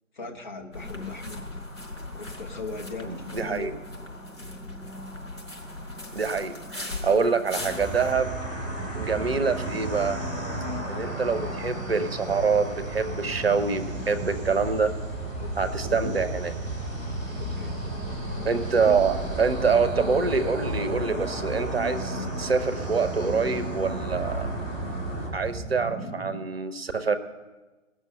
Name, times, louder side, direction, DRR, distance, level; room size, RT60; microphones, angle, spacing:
voice 1, 0.2-1.4 2.1-3.8 7.0-7.2 10.6-10.9 15.4-15.7 17.4-17.8, left 3 dB, 35° left, 3 dB, 1.2 m, -39 dB
sound 1, 0.7-8.1, left 1 dB, 75° left, 4.5 m, -38 dB
voice 2, 3.1-3.7 6.1-8.4 9.0-10.2 10.9-14.9 15.6-16.5 18.4-24.5 25.3-27.2, right 5 dB, 50° right, 11 dB, 0.8 m, -26 dB
sound 2, 7.5-25.3, left 1 dB, 15° left, 3.3 m, -35 dB
sound 3, 7.8-26.4, right 3 dB, 15° right, 1.3 m, -36 dB
18.0 x 6.4 x 6.6 m, 1.2 s
figure-of-eight pair, 145°, 39 cm